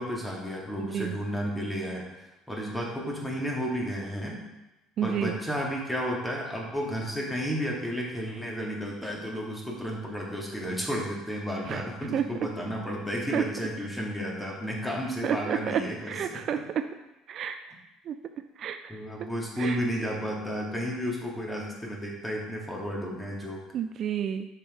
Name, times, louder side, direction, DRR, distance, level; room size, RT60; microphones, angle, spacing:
voice 1, 0.0-4.5 5.0-16.4 18.9-23.6, equal, 10° left, -2 dB, 2.2 m, -32 dB
voice 2, 0.8-1.2 5.0-5.4 11.7-11.8 12.1-12.3 13.3-13.4 15.2-15.8 16.1-16.6 17.3-17.6 18.1-18.2 18.6-19.0 19.6-19.8 23.7-24.5, right 9 dB, 50° right, 8 dB, 0.4 m, -30 dB
6.8 x 5.7 x 3.8 m, 0.98 s
hypercardioid pair, 60°, 0 cm